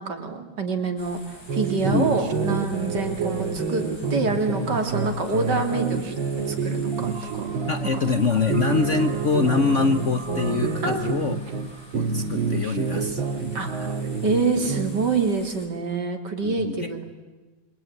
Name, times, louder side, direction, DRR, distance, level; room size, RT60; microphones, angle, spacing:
voice 1, 0.0-3.8 4.1-6.2 6.5-7.5 7.9-8.1 10.8-11.2 13.5-13.7 14.2-17.0, right 4 dB, 60° right, 5 dB, 3.3 m, -26 dB
sound 1, 1.0-15.7, left 2 dB, 90° left, 4.8 m, -48 dB
sound 2, 1.5-8.0 8.4-11.7 11.9-15.1, right 4 dB, 90° right, 2.4 m, -28 dB
sound 3, 6.9-12.8, right 4 dB, 15° right, 1.2 m, -43 dB
voice 2, 7.7-11.4 11.9-13.5 16.4-16.9, left 5 dB, 45° left, 9 dB, 1.1 m, -24 dB
27.0 x 23.5 x 9.3 m, 1.2 s
omnidirectional pair, 2.1 m